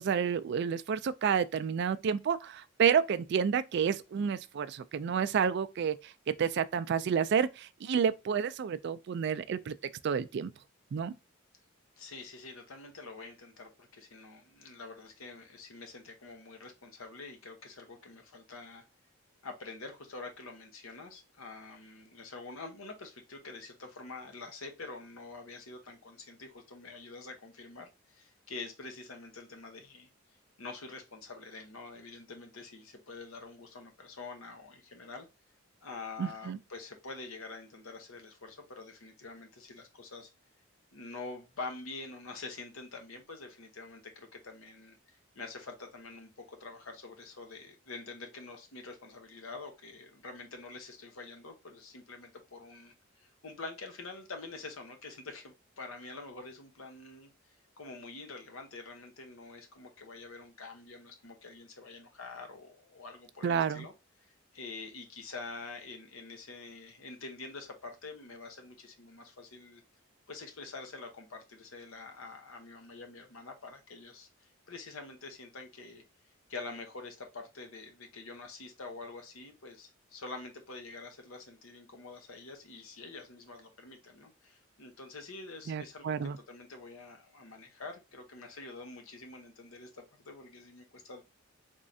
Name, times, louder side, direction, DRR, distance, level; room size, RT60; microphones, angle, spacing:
voice 1, 0.0-6.1 6.4-9.7 10.0-10.5 10.9-11.1 36.2-36.6 63.4-63.9 85.7-86.4, right 7 dB, 55° right, 0.3 m, -30 dB
voice 2, 12.0-18.8 19.4-30.1 30.6-35.3 35.8-40.3 40.9-57.3 57.8-63.9 64.5-69.8 70.3-74.3 74.7-76.0 76.5-86.2 86.5-91.2, left 3 dB, 80° left, 0.9 m, -46 dB
3.6 x 3.2 x 2.6 m
head